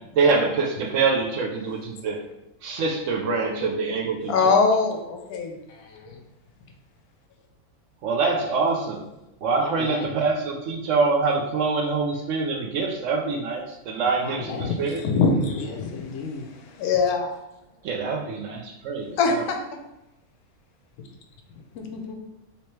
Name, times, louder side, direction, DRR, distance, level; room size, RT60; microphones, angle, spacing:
voice 1, 0.2-2.2 2.6-4.5 8.0-9.0 9.4-15.0 17.8-19.4, right 4 dB, 70° right, 1 dB, 0.8 m, -25 dB
voice 2, 4.3-5.5 14.6-17.3 19.2-19.6, left 4 dB, 85° left, 4 dB, 1.1 m, -23 dB
voice 3, 5.7-6.2 9.6-10.1 14.2-14.8 15.6-16.5 21.7-22.1, left 5 dB, 65° left, 2 dB, 0.8 m, -36 dB
3.4 x 2.8 x 3.1 m, 0.90 s
omnidirectional pair, 1.6 m